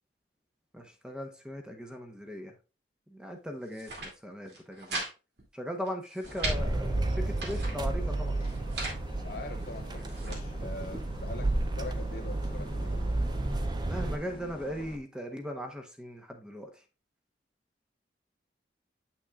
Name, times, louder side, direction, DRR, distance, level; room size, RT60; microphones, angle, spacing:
voice 1, 0.7-2.5 3.1-5.0 5.5-8.3 13.9-16.7, equal, 5° right, 0.9 m, -38 dB
sound 1, 3.6-4.1 4.5-5.1 5.4-5.5 5.9-6.6 7.1-7.8 8.4-9.0 9.7-10.4, right 2 dB, 65° right, 2.4 m, -38 dB
sound 2, 6.2-15.0, left 1 dB, 30° left, 1.0 m, -46 dB
sound 3, 6.4-14.2, right 2 dB, 25° right, 0.5 m, -32 dB
voice 2, 9.2-13.1, left 2 dB, 55° left, 0.5 m, -43 dB
8.2 x 6.0 x 2.4 m
head